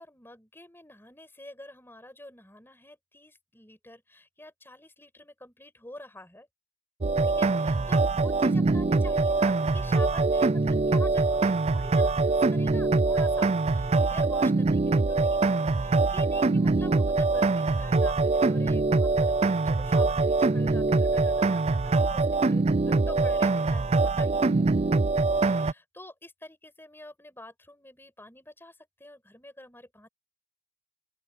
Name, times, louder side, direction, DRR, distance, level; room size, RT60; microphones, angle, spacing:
voice 1, 0.0-6.5 7.2-25.0 25.3-30.1, left 1 dB, 10° left, 6.0 m, -48 dB
sound 1, 7.0-25.7, right 3 dB, 35° right, 0.5 m, -23 dB
open air
head